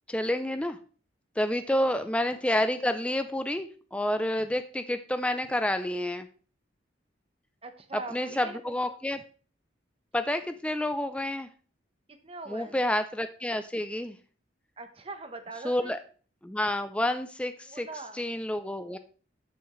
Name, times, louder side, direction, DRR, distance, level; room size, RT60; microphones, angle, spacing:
voice 1, 0.1-0.8 1.4-6.3 7.9-9.2 10.1-11.5 12.5-14.2 15.6-16.0 16.4-17.9 18.1-19.0, left 1 dB, 5° left, 9 dB, 0.4 m, -29 dB
voice 2, 1.6-2.1 7.6-8.6 12.1-12.8 14.8-15.9 17.7-18.2, right 3 dB, 30° right, 7 dB, 1.0 m, -42 dB
13.0 x 6.1 x 3.1 m, 0.40 s
head